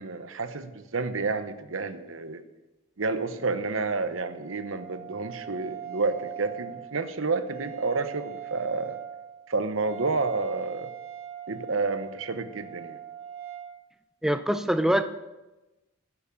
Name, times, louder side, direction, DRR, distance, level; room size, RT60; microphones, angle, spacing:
voice 1, 0.0-2.4 3.0-9.0 9.5-10.9 11.5-13.0, right 3 dB, 70° right, 10 dB, 0.9 m, -30 dB
Wind instrument woodwind instrument, 3.7-13.7, right 10 dB, 85° right, 1.5 m, -42 dB
voice 2, 14.2-15.0, equal, ahead, 10 dB, 0.5 m, -23 dB
12.5 x 7.1 x 6.9 m, 1.1 s
head